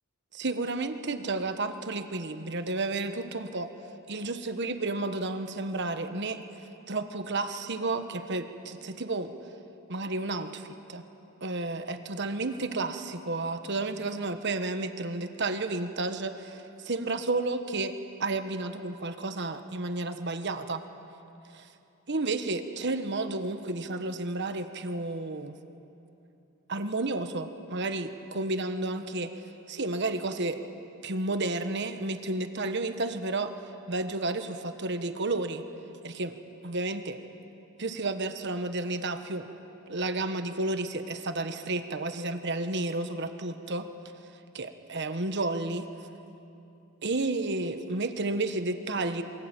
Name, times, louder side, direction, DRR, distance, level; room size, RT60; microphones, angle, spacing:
voice 1, 0.3-3.7 4.1-6.4 6.9-9.3 9.9-11.0 11.4-17.9 18.2-20.8 21.5-21.7 22.1-25.6 26.7-29.3 29.7-30.6 31.0-33.5 33.9-35.6 36.0-36.4 36.6-37.2 37.8-39.5 39.9-43.9 44.5-45.9 47.0-49.2, right 2 dB, 55° right, 8 dB, 1.3 m, -31 dB
27.0 x 23.5 x 9.0 m, 2.9 s
head